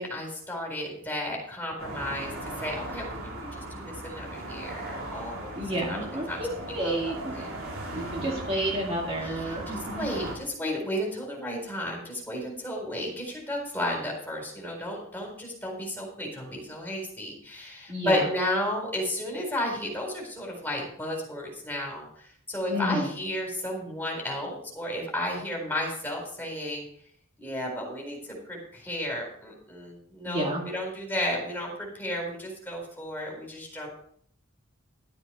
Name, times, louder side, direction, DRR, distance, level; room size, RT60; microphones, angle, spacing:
voice 1, 0.0-2.3 2.6-6.0 6.3-6.4 6.8-7.5 7.9-8.5 9.2-26.8 27.4-33.9, left 1 dB, 10° left, -1 dB, 4.3 m, -33 dB
sound 1, 1.8-10.4, right 1 dB, 75° right, 3.7 m, -38 dB
voice 2, 5.6-7.4 7.9-10.1 17.9-18.3 22.7-23.1 30.2-30.6, right 1 dB, 30° right, -1 dB, 2.2 m, -30 dB
12.5 x 8.3 x 4.9 m, 0.63 s
head